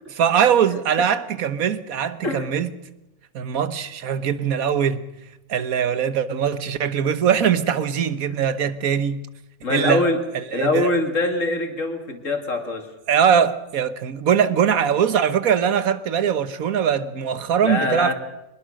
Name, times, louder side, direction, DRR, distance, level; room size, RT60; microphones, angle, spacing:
voice 1, 0.1-2.7 3.3-5.0 5.5-9.2 9.7-10.0 10.3-10.9 13.1-18.1, right 8 dB, 70° right, 1.5 m, -21 dB
voice 2, 9.6-10.2 10.5-12.9 17.6-18.1, left 2 dB, 60° left, 2.7 m, -23 dB
23.5 x 21.0 x 6.4 m
omnidirectional pair, 1.5 m